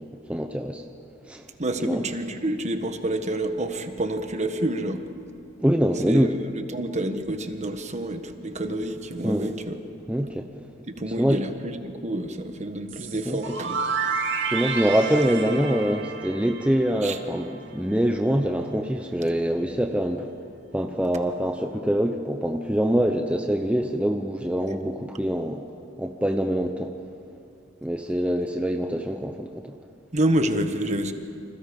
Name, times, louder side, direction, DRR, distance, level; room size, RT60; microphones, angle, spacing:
voice 1, 0.3-0.8 1.2-1.5 1.8-2.1 5.6-6.3 9.2-9.5 10.1-10.5 11.2-11.4 13.3-13.6 14.5-20.3 20.7-25.6 26.0-26.9 27.8-29.7, equal, 5° right, 4 dB, 0.8 m, -24 dB
voice 2, 1.6-5.0 6.1-9.8 11.0-13.8 17.0-17.2 30.1-31.1, right 1 dB, 35° right, 7 dB, 1.5 m, -28 dB
sound 1, 12.9-17.6, right 5 dB, 65° right, 1.9 m, -30 dB
29.5 x 26.5 x 5.4 m, 2.6 s
head